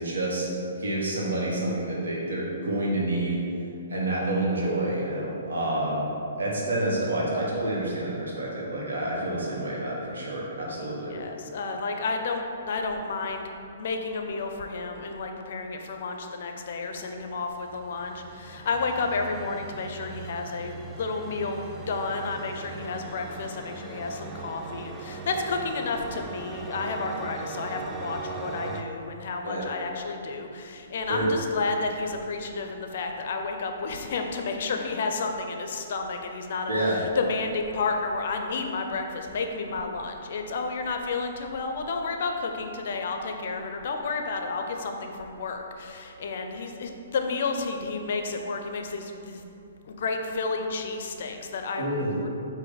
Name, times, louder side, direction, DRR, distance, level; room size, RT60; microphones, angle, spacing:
voice 1, 0.0-3.4 3.9-6.1 6.4-11.1 29.4-29.6 31.1-31.3 36.7-37.0 51.8-52.1, right 1 dB, 85° right, -5 dB, 1.2 m, -28 dB
voice 2, 10.8-13.4 13.8-36.7 37.2-49.4 49.9-52.3, left 4 dB, 60° left, 4 dB, 0.5 m, -31 dB
sound 1, 17.3-28.8, right 4 dB, 15° right, 0.3 m, -40 dB
5.0 x 2.6 x 3.9 m, 2.7 s
hypercardioid pair, 145°, 0 cm